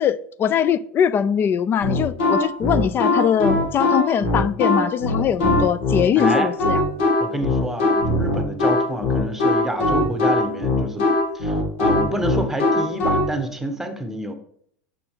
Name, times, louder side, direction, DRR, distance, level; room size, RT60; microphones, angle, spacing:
voice 1, 0.0-6.8, left 8 dB, 35° left, 0.5 m, -21 dB
sound 1, 1.8-13.3, left 2 dB, 75° left, 2.3 m, -20 dB
voice 2, 6.2-6.5 7.2-11.1 11.3-14.3, right 1 dB, 5° right, 1.1 m, -28 dB
7.1 x 5.8 x 3.6 m
hypercardioid pair, 100°, 6 cm